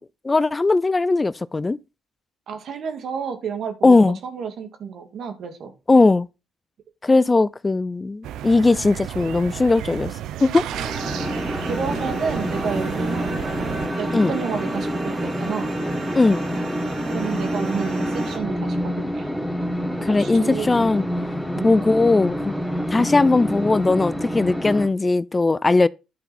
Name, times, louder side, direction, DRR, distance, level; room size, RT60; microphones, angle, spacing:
voice 1, 0.2-1.8 3.8-4.2 5.9-6.3 7.0-10.1 10.4-10.7 14.1-14.3 16.1-16.4 20.0-21.0 21.6-22.5 22.9-25.9, left 3 dB, 25° left, 0.3 m, -18 dB
voice 2, 2.5-4.0 4.2-5.7 11.1-11.2 11.5-13.4 14.0-15.7 17.1-19.3 20.0-20.9 21.5-21.7 22.9-23.1, right 6 dB, 65° right, 2.0 m, -30 dB
sound 1, 8.2-13.9, right 11 dB, 85° right, 0.6 m, -33 dB
sound 2, 10.7-18.4, right 2 dB, 40° right, 2.5 m, -32 dB
sound 3, 11.0-24.9, equal, ahead, 1.8 m, -28 dB
10.5 x 5.3 x 4.3 m
cardioid pair, 90°, 0 cm